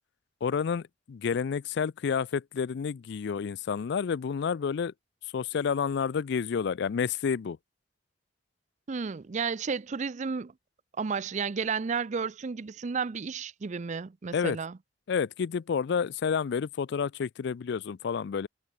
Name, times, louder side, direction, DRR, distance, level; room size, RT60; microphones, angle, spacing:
voice 1, 0.4-4.9 5.3-7.6 14.3-14.6 15.1-18.5, left 6 dB, 60° left, 0.4 m, -29 dB
voice 2, 8.9-10.5 11.0-14.8, right 5 dB, 40° right, 0.5 m, -32 dB
head